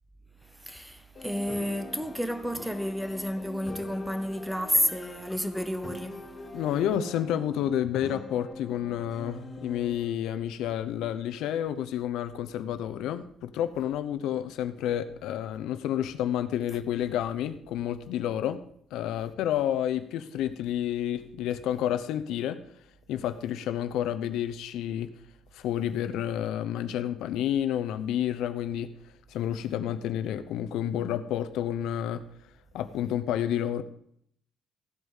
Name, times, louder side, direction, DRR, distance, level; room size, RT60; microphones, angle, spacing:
voice 1, 0.7-6.2, equal, ahead, 0.7 m, -30 dB
sound 1, 1.1-10.1, left 2 dB, 25° left, 3.4 m, -43 dB
voice 2, 6.5-18.6 18.9-22.6 23.1-25.1 25.5-28.9 29.3-32.2 32.7-33.8, left 10 dB, 80° left, 0.8 m, -30 dB
15.0 x 8.0 x 5.5 m
cardioid pair, 160°, 0 cm